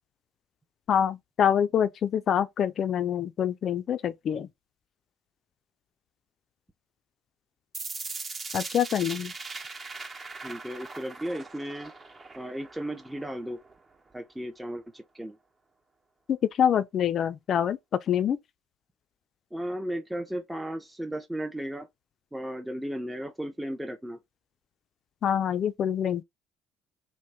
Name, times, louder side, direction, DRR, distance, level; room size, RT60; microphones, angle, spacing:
voice 1, 0.9-4.5 8.5-9.3 16.3-17.8 18.1-18.4 25.2-26.2, left 9 dB, 50° left, 0.4 m, -25 dB
sound 1, 7.7-13.7, right 4 dB, 35° right, 1.0 m, -40 dB
voice 2, 10.4-11.9 12.4-13.6 14.1-15.4 19.5-21.9 22.3-24.2, right 1 dB, 10° right, 0.6 m, -35 dB
3.0 x 2.1 x 3.5 m
hypercardioid pair, 60°, 0 cm